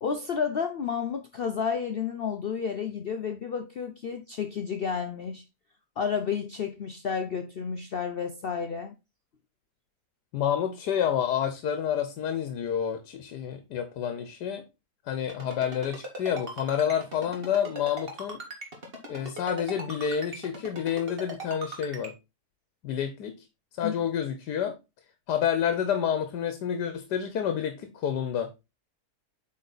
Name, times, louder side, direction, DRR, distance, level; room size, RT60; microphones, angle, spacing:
voice 1, 0.0-5.4 6.0-8.9 23.8-23.9, left 6 dB, 65° left, 0.5 m, -31 dB
voice 2, 10.3-14.6 15.1-18.4 19.1-22.1 22.8-23.5 23.8-24.8 25.3-28.5, left 8 dB, 85° left, 1.4 m, -29 dB
Ringtone, 15.3-22.1, right 1 dB, 35° right, 2.0 m, -39 dB
8.3 x 4.3 x 3.9 m
omnidirectional pair, 1.7 m